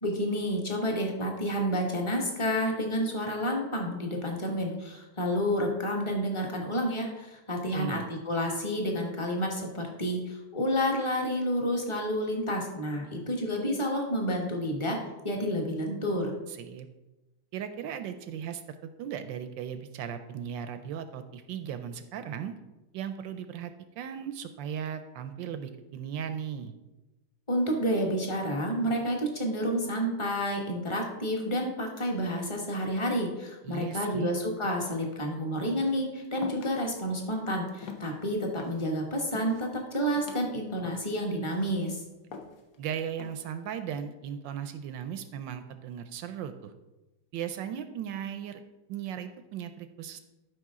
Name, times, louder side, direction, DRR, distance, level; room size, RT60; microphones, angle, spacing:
voice 1, 0.0-15.0 15.2-16.3 27.5-42.0, equal, 20° left, 1 dB, 1.0 m, -30 dB
voice 2, 7.7-8.1 16.5-16.9 17.5-22.5 22.9-26.7 33.6-34.3 42.8-46.7 47.3-48.6 48.9-50.2, right 8 dB, 75° right, 10 dB, 1.1 m, -37 dB
sound 1, 35.6-36.0 36.4-36.7 37.1-37.4 37.7-38.9 39.2-39.7 40.0-40.4 40.8-41.1 41.5-41.9 42.3-42.8 43.2-43.6, left 5 dB, 55° left, 1.0 m, -44 dB
12.0 x 5.4 x 3.7 m, 1.0 s
omnidirectional pair, 2.4 m